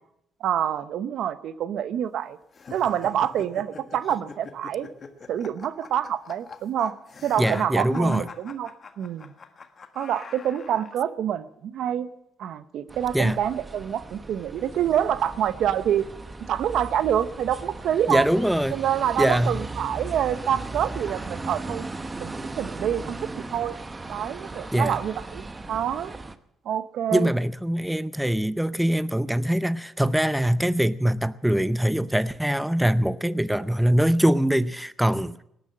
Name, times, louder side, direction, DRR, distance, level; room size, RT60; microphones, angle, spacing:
voice 1, 0.4-2.4 2.7-4.9 5.3-6.9 7.2-9.3 10.0-12.1 12.4-16.0 16.5-18.3 18.7-21.9 22.2-23.7 24.1-26.2 26.6-27.3, right 10 dB, 75° right, 14 dB, 0.8 m, -27 dB
sound 1, 2.5-11.0, left 5 dB, 40° left, 1.5 m, -43 dB
voice 2, 7.4-8.3 13.1-13.4 18.1-18.8 19.2-19.6 24.7-25.0 27.1-35.4, equal, 5° right, 15 dB, 0.6 m, -23 dB
sound 2, 12.9-26.4, right 2 dB, 20° right, 1.0 m, -37 dB
18.5 x 10.5 x 7.5 m, 0.76 s
cardioid pair, 90°, 0 cm